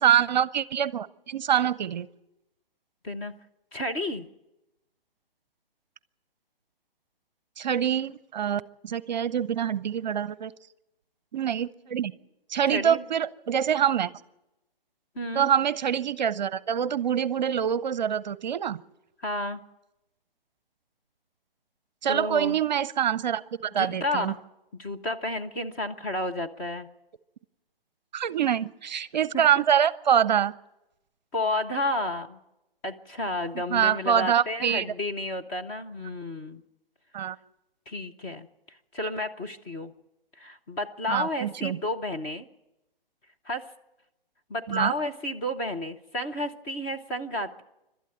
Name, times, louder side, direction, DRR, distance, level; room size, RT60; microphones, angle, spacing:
voice 1, 0.0-2.1 7.6-10.5 11.3-12.1 12.5-14.1 15.3-18.8 22.0-23.4 23.7-24.3 28.1-30.5 33.7-34.9 37.1-37.4 41.1-41.8 44.7-44.9, right 9 dB, 50° right, 19 dB, 0.7 m, -25 dB
voice 2, 3.7-4.3 12.7-13.0 15.2-15.5 19.2-19.6 22.1-22.6 23.8-24.4 24.8-26.9 29.3-29.6 31.3-32.4 32.8-36.6 37.9-38.5 38.9-39.9 40.4-42.5 43.4-43.7 44.5-47.6, left 1 dB, 15° left, 4 dB, 0.6 m, -31 dB
27.0 x 12.5 x 7.8 m, 0.93 s
hypercardioid pair, 145°, 29 cm